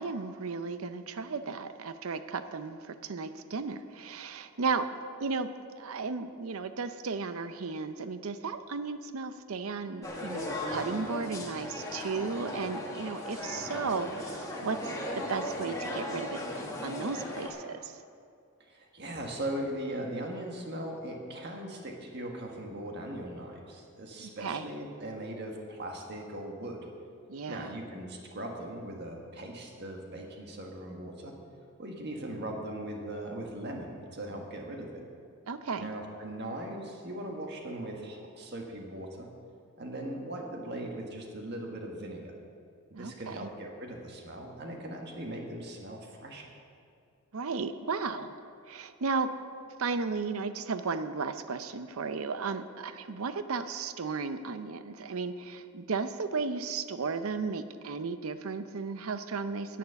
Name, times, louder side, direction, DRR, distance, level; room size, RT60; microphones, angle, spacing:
voice 1, 0.0-4.9 5.2-5.5 5.8-16.4 16.8-18.0 24.2-24.6 27.3-27.8 35.5-35.9 42.9-43.5 47.3-48.4 48.7-49.3 49.8-59.8, right 4 dB, 75° right, 11 dB, 0.6 m, -34 dB
sound 1, 10.0-17.5, left 1 dB, 15° left, 1.6 m, -37 dB
voice 2, 18.6-26.9 27.5-31.4 31.8-35.0 35.8-39.3 39.8-42.3 42.9-46.5, right 1 dB, 50° right, 1 dB, 1.6 m, -39 dB
10.5 x 9.3 x 7.0 m, 2.4 s
head